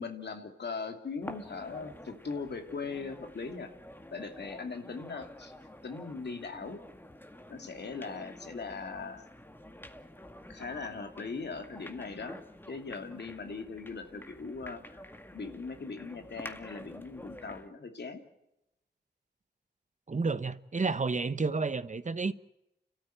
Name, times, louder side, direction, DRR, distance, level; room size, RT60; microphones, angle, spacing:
voice 1, 0.0-3.7 4.1-5.5 5.8-6.8 7.5-9.3 10.5-12.4 12.7-15.1 15.3-18.2, left 4 dB, 75° left, 2.7 m, -40 dB
sound 1, 1.2-17.7, left 1 dB, 10° left, 2.0 m, -49 dB
voice 2, 20.1-22.3, right 4 dB, 45° right, 1.1 m, -30 dB
30.0 x 13.5 x 9.2 m
cardioid pair, 55°, 17 cm